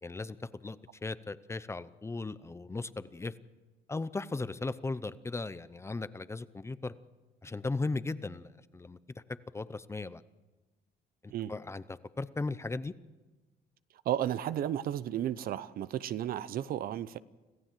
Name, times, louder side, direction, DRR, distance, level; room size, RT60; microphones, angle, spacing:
voice 1, 0.0-3.3 3.9-6.9 7.4-9.0 9.5-10.2 11.2-12.9, left 3 dB, 15° left, 15 dB, 0.7 m, -37 dB
voice 2, 14.0-17.2, right 11 dB, 60° right, 16 dB, 0.8 m, -33 dB
26.0 x 15.0 x 7.6 m, 1.2 s
cardioid pair, 110°, 17 cm